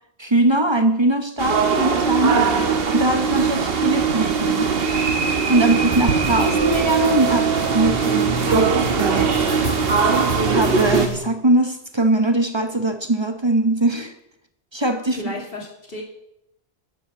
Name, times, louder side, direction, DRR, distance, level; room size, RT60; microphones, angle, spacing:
voice 1, 0.2-2.4 2.9-4.7 5.5-9.4 10.5-14.1 14.7-15.2, right 2 dB, 25° right, 8 dB, 0.9 m, -21 dB
sound 1, 1.4-11.1, right 5 dB, 60° right, 1.2 m, -20 dB
voice 2, 2.3-2.7 5.6-5.8 15.1-16.0, left 1 dB, 55° left, 0 dB, 2.6 m, -33 dB
sound 2, 5.9-11.2, right 1 dB, 30° left, 5.3 m, -29 dB
10.0 x 8.4 x 6.8 m, 0.80 s
omnidirectional pair, 1.1 m